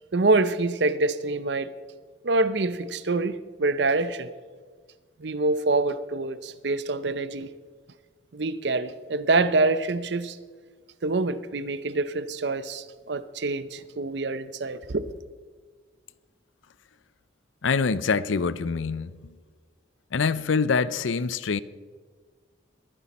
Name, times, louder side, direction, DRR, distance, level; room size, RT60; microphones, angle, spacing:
voice 1, 0.1-1.7 2.2-4.3 5.2-7.5 8.3-10.4 11.0-15.1, right 3 dB, 65° right, 0.6 m, -26 dB
voice 2, 17.6-19.3 20.1-21.6, left 5 dB, 85° left, 0.6 m, -25 dB
21.5 x 10.0 x 4.2 m
head